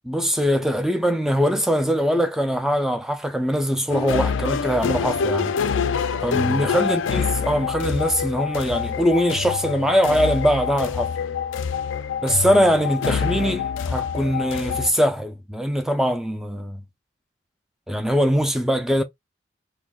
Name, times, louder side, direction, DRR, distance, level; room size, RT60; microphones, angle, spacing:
voice 1, 0.1-5.5 6.2-11.1 12.2-16.8 17.9-19.0, equal, ahead, 0.4 m, -22 dB
sound 1, 3.9-14.9, left 6 dB, 75° left, 0.3 m, -26 dB
3.8 x 2.7 x 2.3 m
head